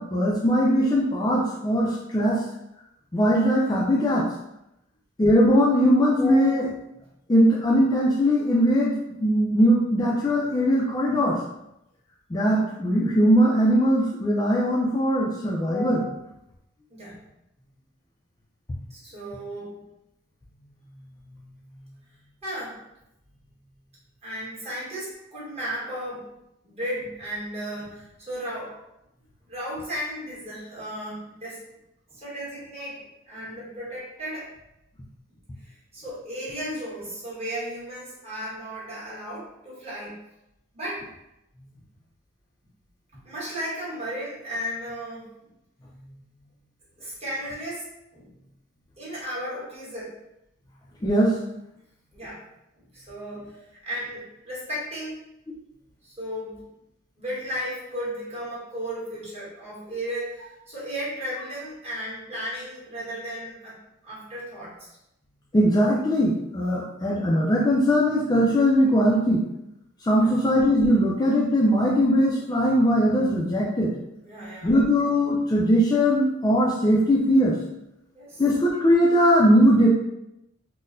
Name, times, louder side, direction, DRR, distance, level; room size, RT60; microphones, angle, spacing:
voice 1, 0.0-2.4 3.1-4.3 5.2-6.7 7.3-9.0 9.2-11.4 12.3-16.1 51.0-51.4 65.5-69.4 70.0-73.9 74.6-77.6 78.4-79.9, equal, 20° left, -4 dB, 0.4 m, -20 dB
voice 2, 18.9-19.8 22.4-22.8 24.2-26.3 26.6-28.7 29.5-31.6 32.1-34.5 35.3-40.2 40.7-41.1 43.2-45.3 47.0-47.8 48.1-48.3 49.0-50.2 52.1-52.4 52.7-53.6 53.8-55.2 56.0-56.6 57.2-63.8 64.0-64.9 70.1-70.3 74.2-74.7 78.1-78.4, equal, 30° right, -8 dB, 1.3 m, -35 dB
4.0 x 2.1 x 2.5 m, 0.86 s
head